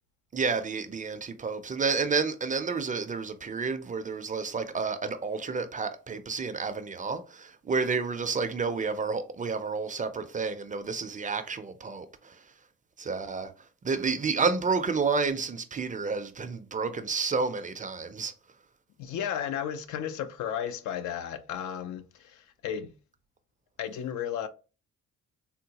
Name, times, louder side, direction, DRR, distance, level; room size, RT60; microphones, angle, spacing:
voice 1, 0.3-12.5 13.0-13.5 13.8-18.3, right 4 dB, 25° right, 0.4 m, -30 dB
voice 2, 19.0-22.9 23.8-24.5, left 9 dB, 75° left, 0.5 m, -34 dB
3.7 x 2.2 x 2.8 m
cardioid pair, 90°, 30 cm